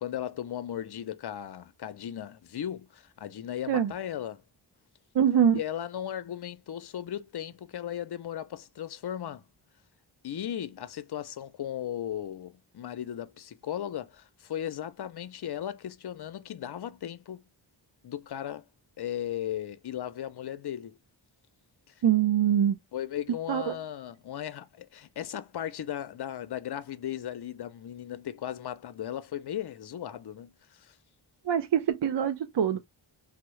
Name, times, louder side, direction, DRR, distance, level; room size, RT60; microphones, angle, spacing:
voice 1, 0.0-4.4 5.5-9.4 10.2-17.4 18.0-18.7 19.0-21.0 22.9-30.9, left 10 dB, 55° left, 0.5 m, -36 dB
voice 2, 5.1-5.6 22.0-22.8 23.5-23.8 31.5-32.8, right 9 dB, 65° right, 0.5 m, -24 dB
3.5 x 2.0 x 3.0 m
wide cardioid pair, 65°, 47 cm